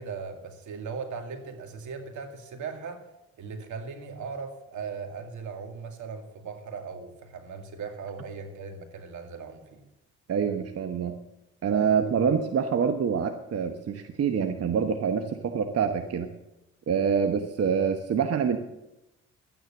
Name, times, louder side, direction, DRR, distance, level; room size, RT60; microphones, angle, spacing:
voice 1, 0.0-3.0 3.4-9.8, right 5 dB, 75° right, 5 dB, 2.3 m, -38 dB
voice 2, 10.3-11.2 11.6-16.3 16.9-18.6, right 6 dB, 55° right, 6 dB, 1.1 m, -26 dB
12.5 x 9.5 x 7.3 m, 0.93 s
cardioid pair, 90°, 30 cm